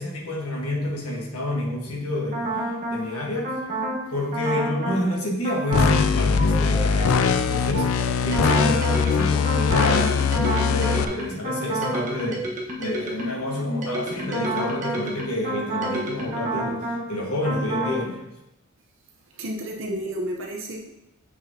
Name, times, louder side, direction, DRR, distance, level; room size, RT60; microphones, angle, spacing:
voice 1, 0.0-2.5 2.9-3.5 4.1-10.2 10.4-12.5 12.8-18.2, left 1 dB, 85° left, -1 dB, 1.5 m, -28 dB
sound 1, 2.3-3.0 3.4-4.0 4.3-5.0 5.4-6.0 6.3-13.4 13.8-17.0 17.4-18.0, right 2 dB, 35° right, 1.3 m, -29 dB
sound 2, 5.7-11.1, left 6 dB, 70° left, 0.4 m, -21 dB
voice 2, 19.3-20.9, right 1 dB, 60° right, 0 dB, 0.8 m, -31 dB
7.1 x 6.3 x 2.8 m, 0.88 s
head